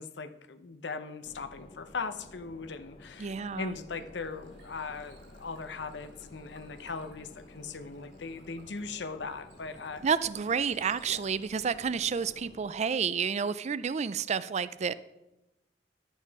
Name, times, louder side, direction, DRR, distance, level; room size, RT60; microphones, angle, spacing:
voice 1, 0.0-10.0 11.1-11.2, left 4 dB, 70° left, 10 dB, 0.7 m, -39 dB
sound 1, 1.2-12.7, left 1 dB, 35° left, 0.7 m, -53 dB
voice 2, 3.2-3.7 10.0-14.9, right 6 dB, 40° right, 16 dB, 0.4 m, -30 dB
Bird / Water, 3.6-12.0, right 3 dB, 85° right, 3.1 m, -61 dB
11.0 x 8.2 x 4.7 m, 0.97 s
head